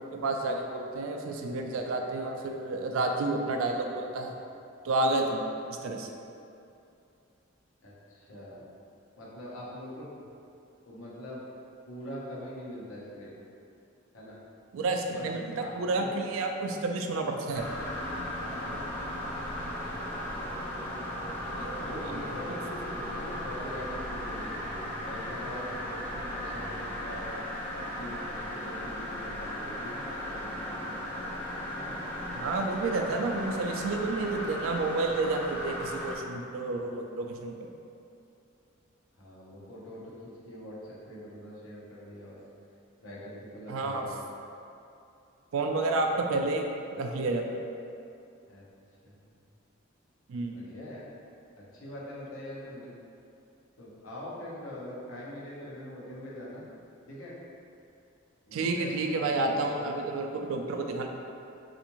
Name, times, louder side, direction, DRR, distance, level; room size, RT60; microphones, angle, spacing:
voice 1, 0.0-4.3 4.8-6.1 14.7-17.6 21.5-22.2 22.5-22.6 32.3-37.7 43.7-44.1 45.5-47.6 50.3-50.6 58.5-61.1, right 2 dB, 90° right, 3 dB, 0.3 m, -30 dB
voice 2, 7.8-8.6 9.2-10.1 10.8-11.4 11.9-13.3 14.1-14.4 15.1-15.2 15.6-16.1 18.4-19.5 19.7-20.0 21.6-24.6 25.0-27.4 28.0-31.1 31.8-32.0 39.2-42.4 43.0-44.2 48.5-48.6 49.0-49.2 50.5-51.1 51.7-52.9 53.8-56.6 57.1-57.3 58.5-59.0 59.3-59.9, left 1 dB, 90° left, -6 dB, 0.8 m, -43 dB
sound 1, 17.5-36.2, left 1 dB, 10° left, 0.4 m, -36 dB
3.5 x 2.5 x 2.9 m, 2.7 s
head